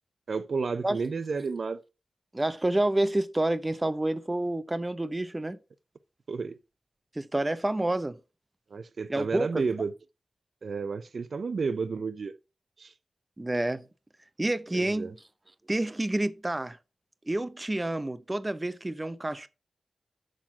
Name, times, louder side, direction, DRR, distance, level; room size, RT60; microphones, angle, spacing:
voice 1, 0.3-1.8 6.3-6.6 8.7-9.9 10.6-12.3 12.8-12.9 14.7-15.1, right 4 dB, 60° right, 0.5 m, -31 dB
voice 2, 2.3-5.6 7.2-8.2 9.1-9.6 13.4-13.8 14.4-15.2 15.7-16.8 17.3-19.5, right 1 dB, 20° right, 0.7 m, -28 dB
6.3 x 5.8 x 5.8 m
wide cardioid pair, 90°, 0 cm